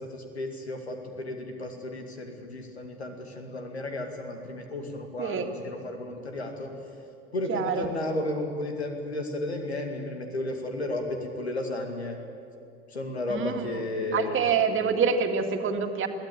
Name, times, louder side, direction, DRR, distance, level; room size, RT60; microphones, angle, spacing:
voice 1, 0.0-6.7 7.3-12.2 12.9-14.4, left 2 dB, 85° left, 4 dB, 2.2 m, -33 dB
voice 2, 7.5-7.9 13.3-13.7 14.1-16.1, right 6 dB, 40° right, 5 dB, 2.1 m, -26 dB
22.0 x 16.0 x 9.0 m, 2.5 s
figure-of-eight pair, 60°, 32 cm